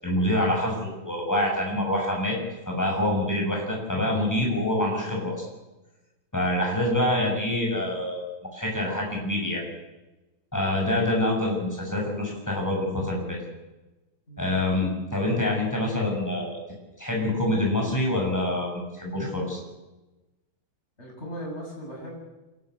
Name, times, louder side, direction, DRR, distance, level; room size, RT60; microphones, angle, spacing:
voice 1, 0.0-2.4 2.7-5.4 6.3-8.2 8.5-9.6 10.5-13.4 14.4-16.6 17.0-19.6, left 1 dB, 10° left, -1 dB, 6.8 m, -26 dB
voice 2, 14.3-14.6 21.0-22.2, equal, 30° left, -1 dB, 7.9 m, -38 dB
27.5 x 13.0 x 8.0 m, 1.1 s
omnidirectional pair, 2.2 m